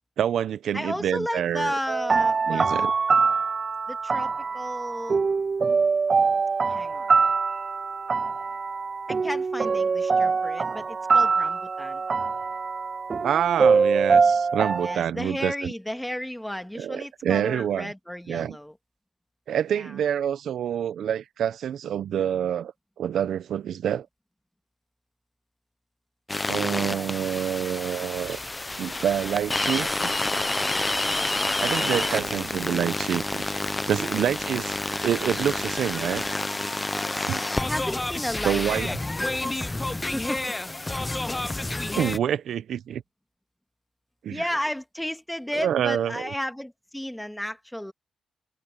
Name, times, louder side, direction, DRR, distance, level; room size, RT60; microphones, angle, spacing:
voice 1, 0.2-1.7 2.5-2.9 13.2-15.7 16.7-17.9 18.3-18.6 19.5-22.7 23.0-24.1 26.5-28.4 28.8-30.1 31.6-33.4 33.9-34.7 35.0-36.2 37.3-37.4 38.4-38.9 42.0-43.0 44.2-44.5 45.5-46.2, right 9 dB, 75° right, 0.8 m, -27 dB
voice 2, 0.7-2.9 3.9-5.2 6.7-7.1 9.1-12.0 14.8-18.7 19.7-19.9 26.8-27.1 31.7-32.5 33.9-34.4 37.6-40.4 44.3-47.9, left 1 dB, 5° left, 2.5 m, -34 dB
sound 1, 1.9-15.0, right 5 dB, 50° right, 0.3 m, -23 dB
sound 2, 26.3-42.2, left 2 dB, 20° left, 0.7 m, -29 dB
sound 3, 28.1-36.3, right 3 dB, 30° right, 6.0 m, -49 dB
supercardioid pair, 50°, 0 cm